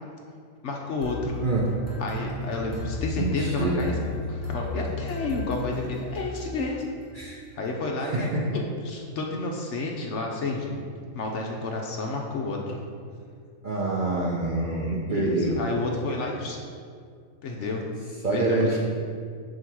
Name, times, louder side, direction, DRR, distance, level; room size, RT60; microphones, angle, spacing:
voice 1, 0.6-1.4 2.0-3.9 4.3-6.8 7.6-10.8 11.1-12.9 15.1-16.6 17.4-17.8 18.3-18.8, left 3 dB, 60° left, 0 dB, 0.9 m, -30 dB
sound 1, 1.0-6.7, left 3 dB, 15° right, 0.7 m, -34 dB
voice 2, 3.2-3.9 7.1-7.4 8.0-8.3 13.6-15.6 18.2-18.8, right 2 dB, 45° right, -4 dB, 0.7 m, -26 dB
7.7 x 2.9 x 5.9 m, 2.2 s
omnidirectional pair, 1.6 m